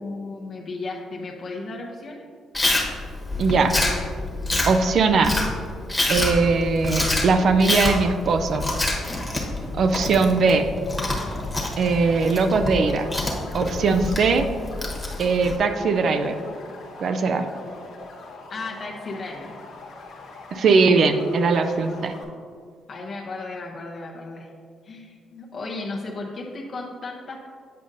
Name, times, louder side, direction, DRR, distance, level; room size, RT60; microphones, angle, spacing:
voice 1, 0.0-2.3 18.5-19.6 22.9-24.5 24.8-27.5, left 3 dB, 50° left, -2 dB, 0.6 m, -34 dB
Chewing mastication, 2.5-15.6, left 2 dB, 10° left, 1.1 m, -27 dB
voice 2, 3.4-3.7 4.7-5.4 6.1-8.6 9.7-10.7 11.8-13.1 13.5-14.5 15.2-16.4 17.0-17.4 20.5-22.1, right 4 dB, 60° right, 7 dB, 0.4 m, -20 dB
sound 1, 10.8-22.2, left 3 dB, 80° left, 1.0 m, -42 dB
8.4 x 5.1 x 2.6 m, 2.1 s
cardioid pair, 90°, 0 cm